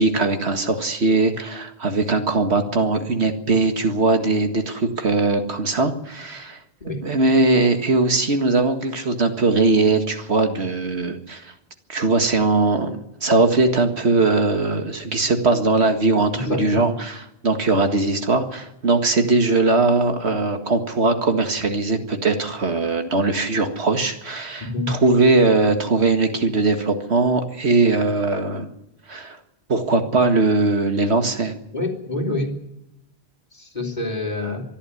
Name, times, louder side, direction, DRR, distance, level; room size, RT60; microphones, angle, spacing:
voice 1, 0.0-6.6 7.0-11.5 11.9-28.7 29.1-29.4 29.7-31.5, right 3 dB, 85° right, 6 dB, 2.1 m, -20 dB
voice 2, 16.3-16.9 24.6-24.9 31.7-32.5 33.6-34.6, left 2 dB, 45° left, 1 dB, 3.2 m, -26 dB
24.5 x 11.5 x 9.7 m, 0.87 s
omnidirectional pair, 1.1 m